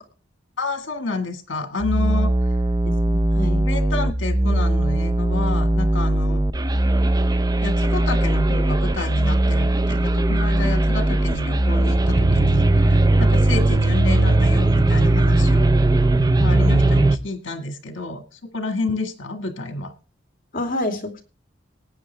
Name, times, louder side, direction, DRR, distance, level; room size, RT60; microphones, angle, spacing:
voice 1, 0.6-2.3 3.6-6.4 7.6-15.7 16.4-19.9, left 2 dB, 80° left, 7 dB, 1.6 m, -29 dB
sound 1, 1.8-17.2, right 1 dB, 20° right, 0.5 m, -19 dB
voice 2, 2.8-3.6 20.5-21.2, left 1 dB, 45° left, 4 dB, 2.5 m, -28 dB
19.0 x 8.6 x 3.3 m, 0.34 s
head